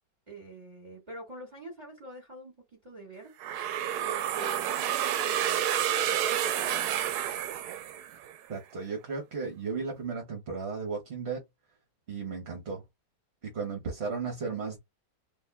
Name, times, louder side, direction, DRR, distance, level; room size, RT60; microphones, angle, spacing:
voice 1, 0.3-3.3 4.0-5.7 6.1-7.1, right 2 dB, 25° right, 1.9 m, -46 dB
sound 1, 3.4-8.3, right 10 dB, 80° right, 1.1 m, -29 dB
voice 2, 8.5-11.4 12.1-12.8 13.4-14.8, right 5 dB, 45° right, 1.3 m, -35 dB
4.1 x 3.0 x 2.3 m
omnidirectional pair, 1.7 m